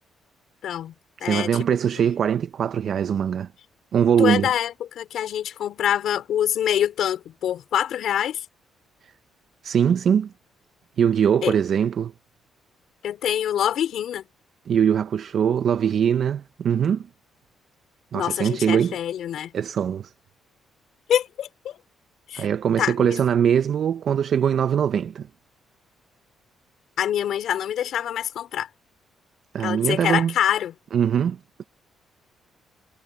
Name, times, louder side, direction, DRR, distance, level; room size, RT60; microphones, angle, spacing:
voice 1, 0.6-0.9 1.2-1.5 2.0-2.1 4.2-8.4 11.4-11.5 13.0-14.3 18.1-19.5 21.1-21.8 22.3-22.5 22.8-23.2 27.0-28.7 29.6-30.7, left 10 dB, 70° left, 4.3 m, -25 dB
voice 2, 1.2-3.5 3.9-4.5 9.0-9.1 9.6-10.3 11.0-12.1 14.7-17.1 18.1-19.0 19.5-20.1 22.4-25.3 29.5-30.3 30.9-31.6, right 8 dB, 60° right, 0.7 m, -22 dB
cardioid pair, 90°, 0 cm